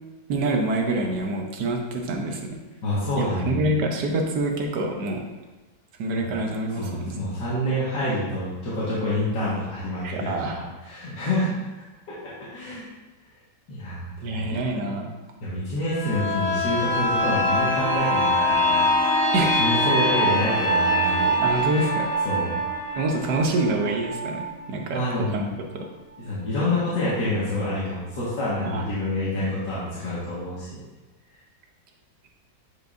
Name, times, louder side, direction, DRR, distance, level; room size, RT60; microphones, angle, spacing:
voice 1, 0.3-2.4 3.2-5.2 6.0-7.2 10.0-10.6 14.2-15.1 19.3-19.6 21.4-22.1 22.9-25.8 28.6-28.8, right 2 dB, 75° right, 2 dB, 1.5 m, -26 dB
voice 2, 2.8-3.7 6.8-11.5 12.1-12.8 13.7-14.9 15.4-19.1 19.6-21.9 22.2-22.6 24.9-25.5 26.2-30.8, left 1 dB, 90° left, -9 dB, 2.3 m, -28 dB
sound 1, 15.8-25.4 25.8-25.9, equal, 15° left, 2.3 m, -24 dB
9.3 x 5.3 x 2.6 m, 1.2 s
omnidirectional pair, 1.8 m